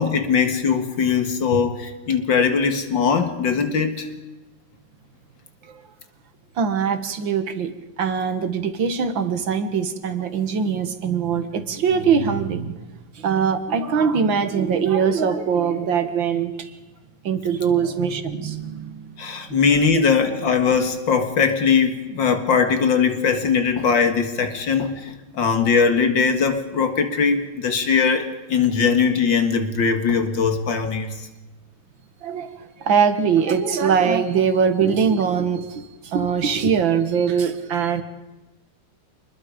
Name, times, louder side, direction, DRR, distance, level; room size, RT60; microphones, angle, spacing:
voice 1, 0.0-4.1 19.2-31.1, left 5 dB, 75° left, 7 dB, 2.5 m, -20 dB
voice 2, 6.6-7.7 8.0-12.8 13.2-16.7 17.2-19.1 19.5-19.6 20.0-20.1 32.2-32.5 32.8-38.0, right 6 dB, 85° right, 10 dB, 2.4 m, -22 dB
27.0 x 21.0 x 5.2 m, 1.1 s
omnidirectional pair, 2.0 m